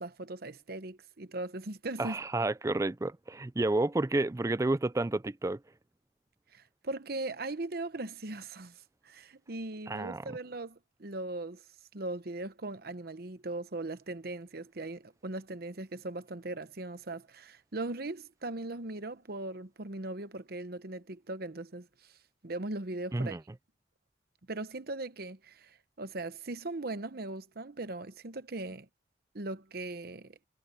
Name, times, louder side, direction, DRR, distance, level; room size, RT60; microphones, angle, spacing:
voice 1, 0.0-2.2 6.5-8.8 9.0-11.6 11.9-22.1 22.4-23.4 24.5-28.9 29.3-30.4, right 2 dB, 55° right, 1.0 m, -39 dB
voice 2, 2.0-5.6 9.9-10.3 23.1-23.4, right 2 dB, 15° right, 0.4 m, -30 dB
head